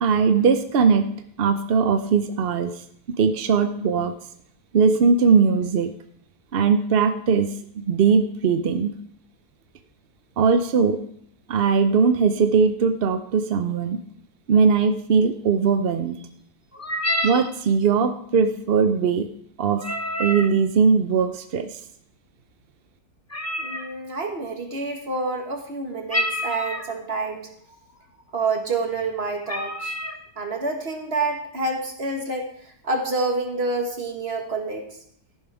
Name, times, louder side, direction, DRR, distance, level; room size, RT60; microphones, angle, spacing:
voice 1, 0.0-1.1 1.4-2.7 3.1-4.1 4.7-5.9 6.5-8.9 10.4-11.0 11.5-14.0 14.5-16.2 17.2-19.3 19.6-19.8 20.2-21.8, right 5 dB, 60° right, 8 dB, 0.6 m, -20 dB
sound 1, 16.7-17.5 19.7-20.5 23.3-23.9 26.1-26.9 27.7-27.8 28.2-28.5 29.0-29.1 29.5-30.2, equal, 25° left, 0.3 m, -28 dB
voice 2, 23.6-27.5 28.3-30.0 30.4-34.9, right 3 dB, 40° right, 3 dB, 1.9 m, -28 dB
14.0 x 11.0 x 3.5 m, 0.67 s
omnidirectional pair, 1.7 m